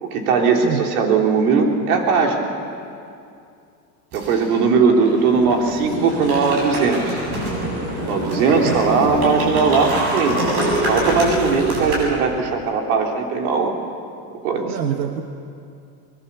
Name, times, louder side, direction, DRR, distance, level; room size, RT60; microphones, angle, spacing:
voice 1, 0.0-2.5 4.1-7.2 8.0-10.4 10.9-13.8 14.4-14.8, right 5 dB, 60° right, 2 dB, 3.6 m, -19 dB
sound 1, 4.1-4.6 5.0-12.0, right 1 dB, 40° right, 7.8 m, -25 dB
voice 2, 14.7-15.2, right 9 dB, 85° right, 5 dB, 1.4 m, -25 dB
23.5 x 21.5 x 7.0 m, 2.5 s
supercardioid pair, 165°, 48 cm